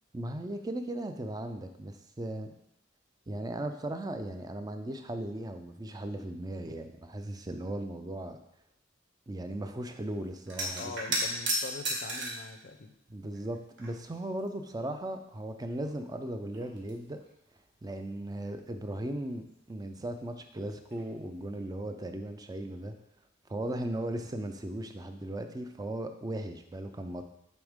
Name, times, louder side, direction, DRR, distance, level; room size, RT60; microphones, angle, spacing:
voice 1, 0.1-2.5 3.3-8.4 9.3-11.2 13.1-17.2 17.8-22.9 23.5-27.2, right 1 dB, 20° right, 7 dB, 0.4 m, -37 dB
sound 1, 10.5-12.5 13.3-14.1 14.4-14.5 15.8-15.9 16.3-17.3 20.9-21.1 21.4-21.6, right 1 dB, 60° right, 1.3 m, -34 dB
voice 2, 10.8-12.9, left 4 dB, 50° left, 8 dB, 0.5 m, -43 dB
8.3 x 3.5 x 3.6 m, 0.82 s
head